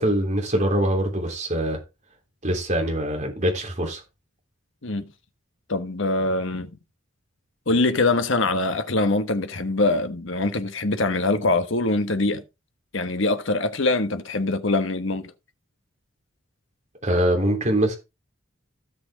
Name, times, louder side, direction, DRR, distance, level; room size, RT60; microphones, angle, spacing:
voice 1, 0.0-1.8 2.4-4.0 17.0-18.0, right 1 dB, 35° right, 3.4 m, -23 dB
voice 2, 5.7-6.7 7.7-12.4 12.9-15.3, left 2 dB, 65° left, 1.3 m, -23 dB
16.0 x 6.1 x 3.7 m
head